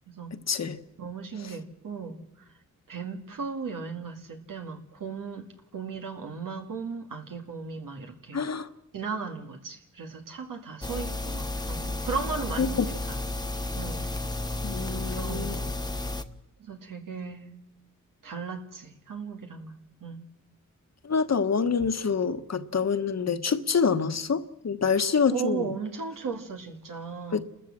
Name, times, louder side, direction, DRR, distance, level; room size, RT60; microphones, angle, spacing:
voice 1, 0.5-0.8 8.3-8.7 12.6-12.7 14.6-15.5 21.1-25.7 27.3-27.4, left 5 dB, 55° left, 1.2 m, -26 dB
voice 2, 1.0-2.2 2.9-5.5 5.7-8.4 8.9-12.8 13.1-13.2 13.7-14.0 15.1-15.7 16.6-17.5 18.2-20.2 25.3-27.4, right 5 dB, 90° right, 2.2 m, -36 dB
sound 1, 10.8-16.2, left 2 dB, 15° left, 1.1 m, -32 dB
30.0 x 14.0 x 7.5 m
cardioid pair, 75°, 32 cm